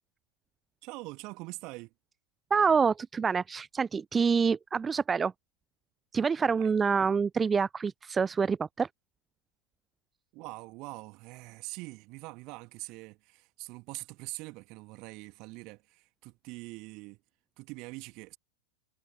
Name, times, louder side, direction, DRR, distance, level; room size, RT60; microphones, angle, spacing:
voice 1, 0.8-1.9 6.5-6.7 10.3-17.2 17.6-18.4, right 25 dB, 40° right, 2.3 m, -44 dB
voice 2, 2.5-5.3 6.1-8.9, right 5 dB, 15° right, 0.4 m, -26 dB
figure-of-eight pair, 90°, 0 cm